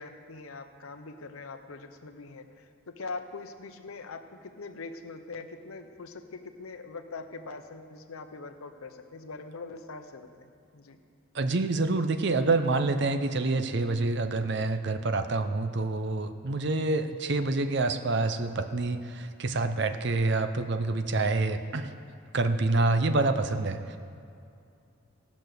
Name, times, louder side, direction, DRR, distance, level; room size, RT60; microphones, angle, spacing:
voice 1, 0.0-11.0, left 3 dB, 80° left, 6 dB, 0.8 m, -42 dB
voice 2, 11.3-21.9 22.3-24.0, right 2 dB, 55° right, 9 dB, 0.6 m, -27 dB
17.0 x 6.2 x 6.6 m, 2.5 s
head